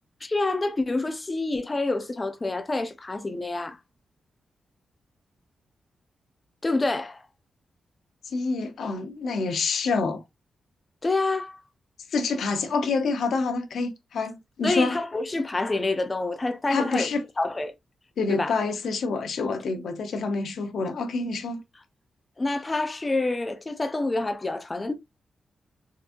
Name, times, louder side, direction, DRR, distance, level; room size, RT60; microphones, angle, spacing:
voice 1, 0.2-3.8 6.6-7.2 11.0-11.6 14.6-17.1 17.4-17.7 18.3-18.5 22.4-24.9, left 2 dB, 20° left, 0.5 m, -27 dB
voice 2, 8.3-10.2 12.1-15.0 16.7-17.2 18.2-21.6, left 4 dB, 75° left, 0.7 m, -27 dB
3.8 x 2.6 x 2.5 m
wide cardioid pair, 135°, 0 cm